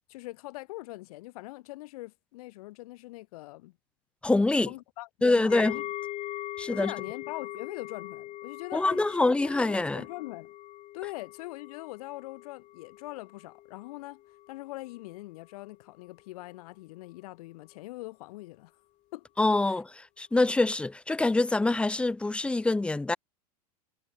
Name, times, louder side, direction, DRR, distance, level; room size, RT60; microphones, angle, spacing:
voice 1, 0.1-3.8 4.7-5.9 6.7-10.5 10.9-14.2 14.5-18.7 19.1-19.3 19.6-19.8, left 19 dB, 65° left, 1.8 m, -42 dB
voice 2, 4.2-4.7 5.2-5.7 6.6-6.9 8.7-10.0 19.4-23.2, left 2 dB, 5° left, 0.4 m, -25 dB
sound 1, 5.5-14.6 14.9-15.1 15.6-15.7, left 15 dB, 35° left, 0.7 m, -41 dB
hypercardioid pair, 95°, 21 cm